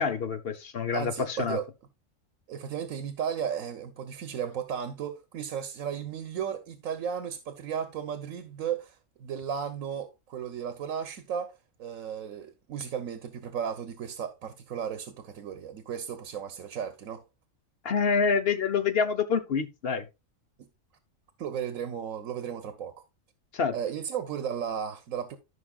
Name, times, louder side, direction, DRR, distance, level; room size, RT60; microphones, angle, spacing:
voice 1, 0.0-1.6 17.8-20.1 23.5-23.8, left 5 dB, 50° left, 1.1 m, -27 dB
voice 2, 0.9-1.7 2.5-17.2 20.6-20.7 21.4-22.9 23.7-25.4, right 8 dB, 90° right, 1.3 m, -35 dB
14.0 x 5.5 x 2.3 m
omnidirectional pair, 1.4 m